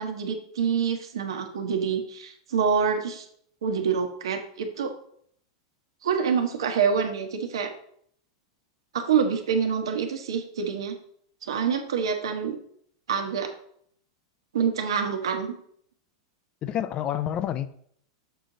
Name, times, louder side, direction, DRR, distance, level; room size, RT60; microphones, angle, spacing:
voice 1, 0.0-3.3 3.6-4.9 6.0-7.7 8.9-11.0 11.4-12.6 13.1-13.5 14.5-15.5, right 6 dB, 85° right, 5 dB, 1.1 m, -26 dB
voice 2, 16.6-17.8, left 10 dB, 35° left, 13 dB, 0.4 m, -29 dB
6.8 x 4.9 x 3.8 m, 0.65 s
hypercardioid pair, 120°, 3 cm